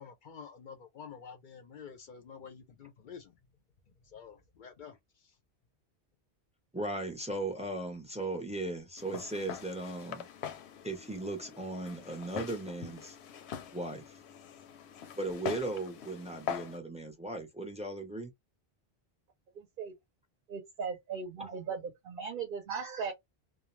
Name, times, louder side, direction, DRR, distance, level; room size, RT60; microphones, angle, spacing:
voice 1, 0.0-3.3 4.1-5.0, left 6 dB, 60° left, 0.6 m, -49 dB
voice 2, 6.7-10.3 10.8-13.2 13.7-14.2 15.1-18.3 21.4-21.5, right 2 dB, 10° right, 0.5 m, -37 dB
Walk footsteps, 9.0-16.8, left 8 dB, 90° left, 0.8 m, -43 dB
voice 3, 19.6-19.9 20.5-23.1, right 6 dB, 60° right, 0.7 m, -38 dB
2.3 x 2.2 x 3.0 m
omnidirectional pair, 1.1 m